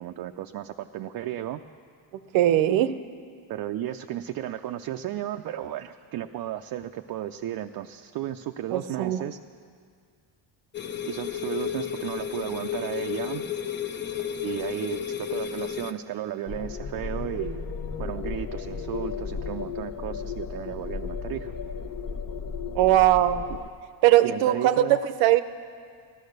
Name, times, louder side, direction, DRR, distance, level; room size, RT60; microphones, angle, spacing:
voice 1, 0.0-1.6 3.5-9.4 11.0-13.5 14.4-17.7 18.0-21.5 24.2-25.0, right 12 dB, 50° right, 5 dB, 0.5 m, -34 dB
voice 2, 2.3-2.9 8.7-9.2 22.7-23.4 24.0-25.4, right 13 dB, 80° right, 12 dB, 0.8 m, -20 dB
sound 1, 10.7-15.9, left 9 dB, 25° left, 0.6 m, -32 dB
sound 2, 16.5-23.7, left 5 dB, 45° left, 1.0 m, -34 dB
15.5 x 11.5 x 6.6 m, 2.1 s
cardioid pair, 115°, 46 cm